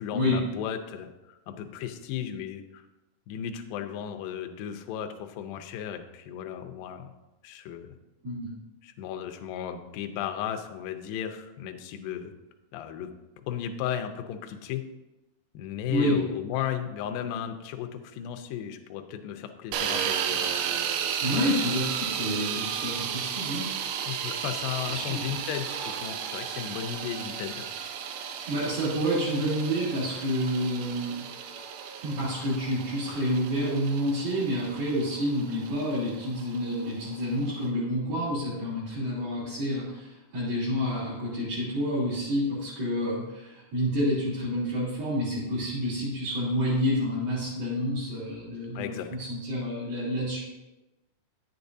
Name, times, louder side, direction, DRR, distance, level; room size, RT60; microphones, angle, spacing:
voice 1, 0.0-2.8 3.3-7.1 7.4-7.9 8.8-12.3 12.7-13.1 13.5-14.8 15.5-20.5 21.2-21.3 22.5-22.6 24.0-27.7 48.8-49.3, left 9 dB, 80° left, 6 dB, 2.1 m, -35 dB
sound 1, 19.7-37.7, right 8 dB, 85° right, 2.7 m, -34 dB
voice 2, 21.2-23.7 24.9-25.2 28.5-31.2 32.0-50.4, equal, 60° right, -11 dB, 4.6 m, -29 dB
10.5 x 8.1 x 2.7 m, 1.0 s
omnidirectional pair, 4.8 m